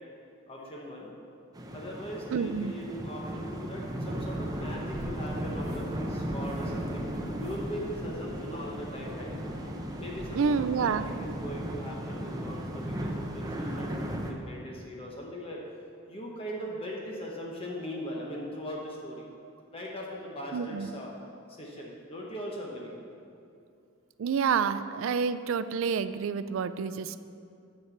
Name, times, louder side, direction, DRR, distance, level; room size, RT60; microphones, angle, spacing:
voice 1, 0.5-1.1 1.7-7.1 7.4-9.3 10.0-15.6 16.1-19.3 19.7-21.1 21.5-22.9, equal, 25° left, -2 dB, 1.0 m, -40 dB
sound 1, 1.5-14.3, equal, 15° right, 0.6 m, -36 dB
voice 2, 2.3-2.7 10.3-11.1 20.5-20.9 24.2-27.2, right 6 dB, 65° right, 13 dB, 0.3 m, -28 dB
sound 2, 4.1-11.5, right 1 dB, 50° right, 1.3 m, -44 dB
9.9 x 4.4 x 7.1 m, 2.5 s
head